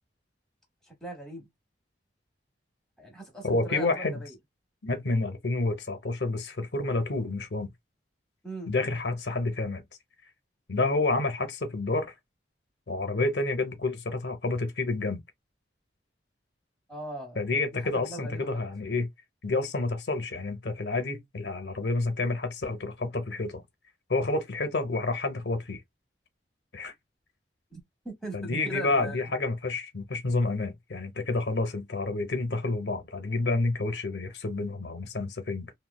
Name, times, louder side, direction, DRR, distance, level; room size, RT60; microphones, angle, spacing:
voice 1, 0.9-1.5 3.0-4.3 8.4-8.7 16.9-17.4 17.7-18.7 27.7-27.8 28.0-29.2, right 1 dB, 5° left, 0.9 m, -40 dB
voice 2, 3.4-4.2 4.8-7.7 8.7-9.8 10.7-12.1 12.9-15.2 17.4-19.1 19.4-23.6 24.1-25.8 26.7-26.9 28.3-35.7, left 3 dB, 70° left, 0.6 m, -29 dB
3.0 x 2.1 x 2.2 m
head